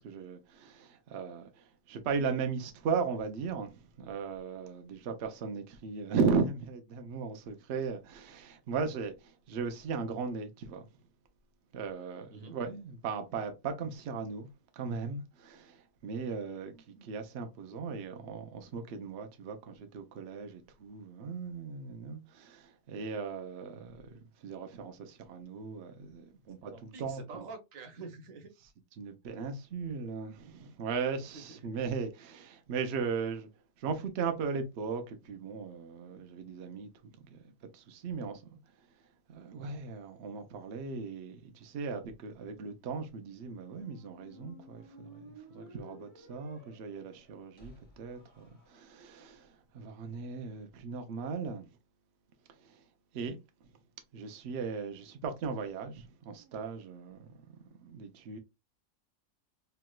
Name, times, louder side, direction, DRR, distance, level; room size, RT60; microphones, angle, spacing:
voice 1, 0.0-10.9 11.7-14.5 14.7-27.5 29.0-33.5 33.8-38.6 39.3-51.8 52.5-52.8 53.1-53.4 54.1-57.6 57.8-58.4, right 5 dB, 60° right, 0.8 m, -37 dB
voice 2, 26.7-28.5 31.5-31.6, right 4 dB, 90° right, 1.2 m, -46 dB
Squeak, 43.3-49.2, equal, 20° right, 1.4 m, -55 dB
3.3 x 2.9 x 2.2 m
omnidirectional pair, 1.4 m